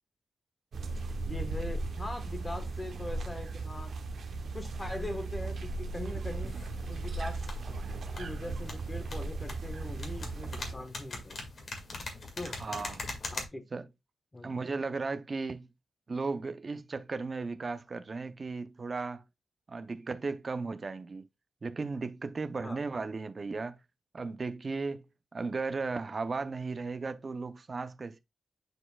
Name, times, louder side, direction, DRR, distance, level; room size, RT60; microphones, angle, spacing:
sound 1, 0.7-10.7, right 3 dB, 65° right, 0.8 m, -37 dB
voice 1, 1.2-3.9 4.5-6.5 6.9-7.4 8.2-11.4 12.4-12.6 13.3-13.6 14.3-14.6 22.6-22.8, left 1 dB, 15° left, 1.2 m, -41 dB
sound 2, 6.5-13.4, left 3 dB, 45° left, 1.9 m, -43 dB
voice 2, 12.6-13.0 13.7-13.9 14.4-15.7 16.1-19.2 19.7-21.3 21.6-23.8 24.1-25.0 25.3-28.2, right 4 dB, 35° right, 0.6 m, -35 dB
9.9 x 4.3 x 2.3 m
wide cardioid pair, 155°, 0 cm